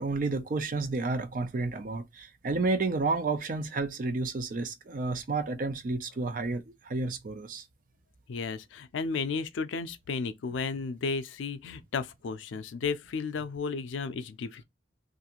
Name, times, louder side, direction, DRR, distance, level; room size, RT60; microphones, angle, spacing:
voice 1, 0.0-7.6, right 3 dB, 45° right, 0.4 m, -31 dB
voice 2, 8.3-14.6, left 4 dB, 85° left, 0.4 m, -33 dB
2.5 x 2.4 x 2.8 m
head